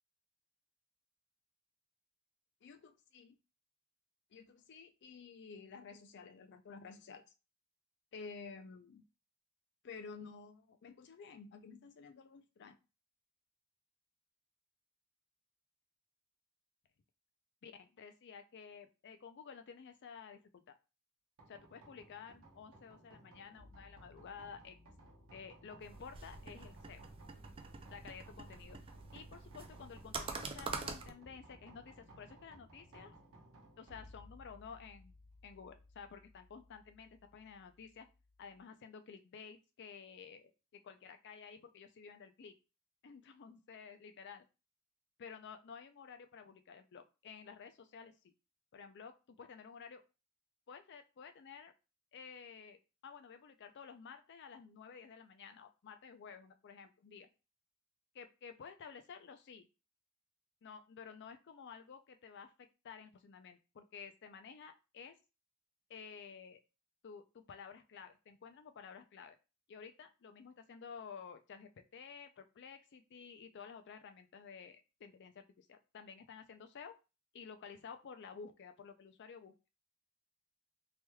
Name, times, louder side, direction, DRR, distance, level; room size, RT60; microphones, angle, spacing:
voice 1, 2.6-3.4 4.3-7.3 8.1-9.0 9.8-12.8 17.6-20.6 21.5-24.8 25.3-27.0 27.9-28.8 29.1-33.1 33.8-35.2 35.4-38.1 38.4-42.5 43.0-44.5 45.2-48.3 48.7-50.0 50.7-51.7 52.1-57.3 58.1-59.7 60.6-65.2 65.9-66.6 67.0-69.4 69.7-76.9 77.3-79.5, left 6 dB, 50° left, 8 dB, 0.4 m, -52 dB
sound 1, 21.4-38.6, equal, 65° right, 0.9 m, -60 dB
sound 2, 25.8-31.1, right 4 dB, 25° right, 0.3 m, -46 dB
3.2 x 2.9 x 2.2 m, 0.30 s
head